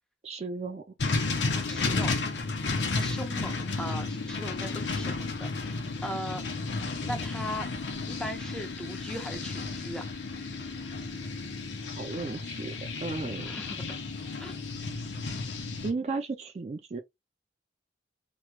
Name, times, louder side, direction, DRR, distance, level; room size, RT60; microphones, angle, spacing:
voice 1, 0.2-0.8 12.0-12.7 13.0-13.6 15.8-17.0, right 3 dB, 40° right, 0.4 m, -34 dB
sound 1, 1.0-15.9, left 3 dB, 85° left, 0.8 m, -33 dB
voice 2, 1.4-2.1 2.5-6.4 7.0-7.7 8.1-10.0 13.4-13.8 14.4-14.6, equal, 5° left, 0.7 m, -39 dB
3.0 x 3.0 x 2.2 m
head